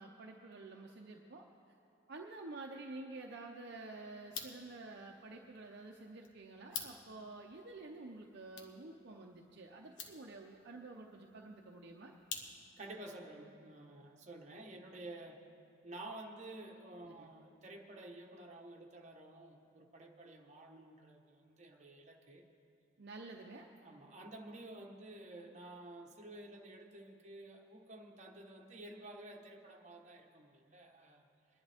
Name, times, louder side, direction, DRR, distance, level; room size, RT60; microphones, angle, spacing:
voice 1, 0.0-1.8 2.1-12.1 17.0-17.3 23.0-23.7, right 2 dB, 55° right, 1 dB, 0.7 m, -50 dB
sound 1, 4.2-12.9, left 5 dB, 75° left, 1.2 m, -51 dB
voice 2, 12.8-15.4 15.8-22.5 23.8-31.3, right 2 dB, 35° right, 0 dB, 1.2 m, -51 dB
22.5 x 10.5 x 3.5 m, 2.6 s
head